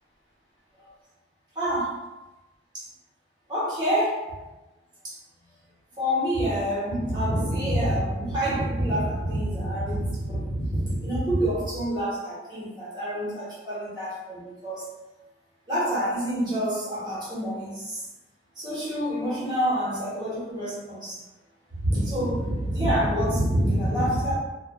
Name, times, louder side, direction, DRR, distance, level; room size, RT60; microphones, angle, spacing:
voice 1, 1.5-1.9 3.5-4.2 5.0-5.1 6.0-14.8 15.7-18.0 18.6-21.2 21.8-24.3, equal, 20° right, -9 dB, 1.0 m, -27 dB
3.1 x 2.2 x 2.2 m, 1.1 s
head